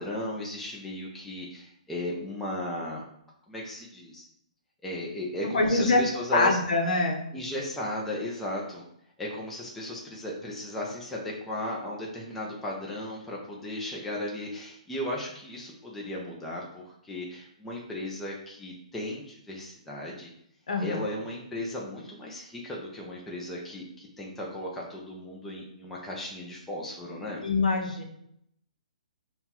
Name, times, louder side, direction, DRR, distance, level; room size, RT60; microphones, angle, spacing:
voice 1, 0.0-3.0 3.5-4.3 4.8-6.6 7.3-8.8 9.2-20.3 20.8-27.4, left 1 dB, 5° left, -4 dB, 0.4 m, -36 dB
voice 2, 5.5-6.0 6.3-7.2 20.7-21.0 27.4-28.0, left 3 dB, 70° left, 3 dB, 0.8 m, -24 dB
5.5 x 2.2 x 2.9 m, 0.73 s
hypercardioid pair, 165°, 4 cm